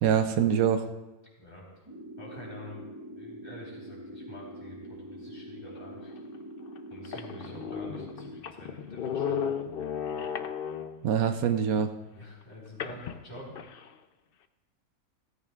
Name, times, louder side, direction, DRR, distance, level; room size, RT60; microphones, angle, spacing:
voice 1, 0.0-0.9 11.0-11.9, right 8 dB, 80° right, 8 dB, 1.1 m, -24 dB
voice 2, 1.4-1.7 2.2-2.9 3.2-6.1 6.9-9.6 12.1-13.6, equal, 30° left, -4 dB, 4.0 m, -47 dB
sound 1, 1.9-8.4, right 1 dB, 40° right, 0.4 m, -44 dB
sound 2, 6.1-6.2 6.8-6.9 7.0-11.1 12.8-13.9, left 7 dB, 60° left, 0.6 m, -35 dB
17.0 x 14.5 x 2.4 m, 1.1 s
omnidirectional pair, 1.5 m